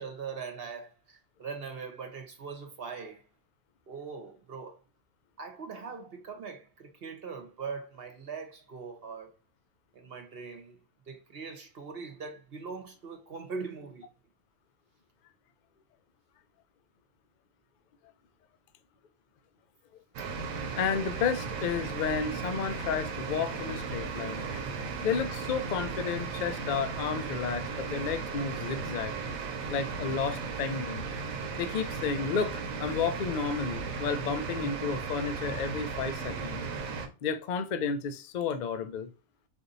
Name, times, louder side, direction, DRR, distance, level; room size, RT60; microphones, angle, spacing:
voice 1, 0.0-3.3 3.9-4.8 5.4-9.3 9.9-10.8 11.1-14.1, right 5 dB, 50° right, 1.0 m, -41 dB
sound 1, 20.1-37.1, right 5 dB, 90° right, 1.2 m, -36 dB
voice 2, 20.8-24.7 25.0-29.1 29.7-31.1 31.6-36.6 37.2-39.1, left 6 dB, 70° left, 0.4 m, -32 dB
4.2 x 2.7 x 3.9 m
omnidirectional pair, 1.4 m